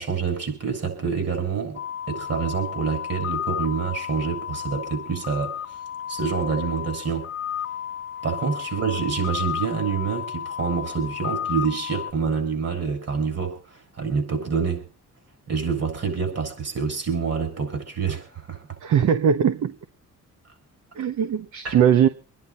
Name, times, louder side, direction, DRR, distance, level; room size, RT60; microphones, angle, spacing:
voice 1, 0.0-1.8 2.1-5.6 6.1-7.3 8.2-14.8 15.5-18.6 21.6-21.8, right 5 dB, 55° right, 7.5 m, -27 dB
sound 1, 1.8-12.1, left 9 dB, 45° left, 1.1 m, -32 dB
voice 2, 18.8-19.7 21.0-22.1, right 8 dB, 75° right, 1.2 m, -20 dB
26.0 x 10.5 x 4.0 m
cardioid pair, 115°, 30 cm